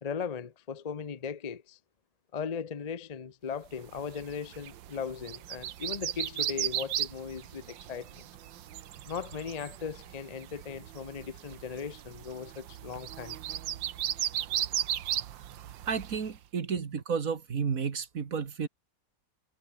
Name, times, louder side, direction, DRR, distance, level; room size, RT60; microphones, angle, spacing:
voice 1, 0.0-1.8 2.3-8.2 9.0-13.4, left 6 dB, 35° left, 0.6 m, -38 dB
sound 1, 3.9-16.3, right 11 dB, 90° right, 1.7 m, -36 dB
voice 2, 15.9-18.7, right 6 dB, 50° right, 1.9 m, -32 dB
omnidirectional pair, 2.0 m